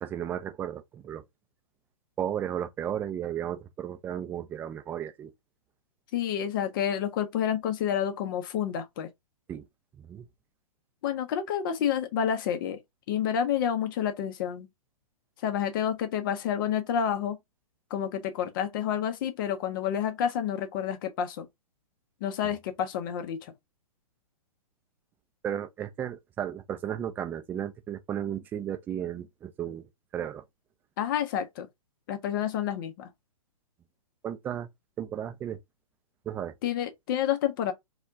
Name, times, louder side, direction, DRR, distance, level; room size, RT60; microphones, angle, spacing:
voice 1, 0.0-1.2 2.2-5.3 9.5-9.6 10.0-10.2 25.4-29.9 30.1-30.4 34.2-34.7 35.0-35.6 36.3-36.5, right 10 dB, 10° right, 0.3 m, -34 dB
voice 2, 6.1-9.1 11.0-12.8 13.1-14.7 15.4-17.4 17.9-21.5 22.2-23.5 31.0-31.7 32.1-33.1 36.6-37.7, left 9 dB, 35° left, 0.6 m, -29 dB
4.1 x 2.2 x 2.6 m
figure-of-eight pair, 120°, 19 cm